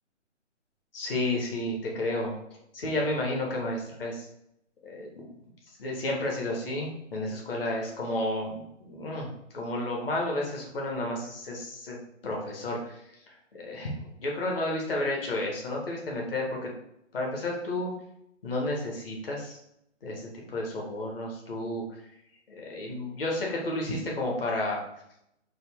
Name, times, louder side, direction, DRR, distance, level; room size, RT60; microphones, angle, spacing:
voice 1, 0.9-2.3 2.7-4.3 4.8-5.4 5.8-12.0 12.2-13.0 13.3-13.9 14.2-16.7 17.1-17.9 18.4-19.6 20.0-22.0 22.5-24.8, left 1 dB, 45° left, -1 dB, 1.1 m, -32 dB
4.1 x 2.3 x 3.4 m, 0.77 s
figure-of-eight pair, 135°, 38 cm